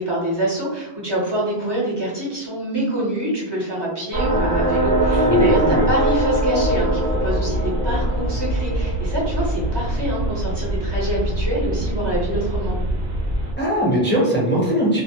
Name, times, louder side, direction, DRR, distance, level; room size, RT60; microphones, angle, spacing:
voice 1, 0.0-12.8, right 1 dB, 25° right, -7 dB, 0.8 m, -25 dB
sound 1, 4.1-13.5, right 1 dB, 85° right, 0.9 m, -22 dB
voice 2, 5.1-5.9 13.6-15.0, equal, 15° left, -6 dB, 0.4 m, -20 dB
2.1 x 2.1 x 2.8 m, 1.0 s
omnidirectional pair, 1.1 m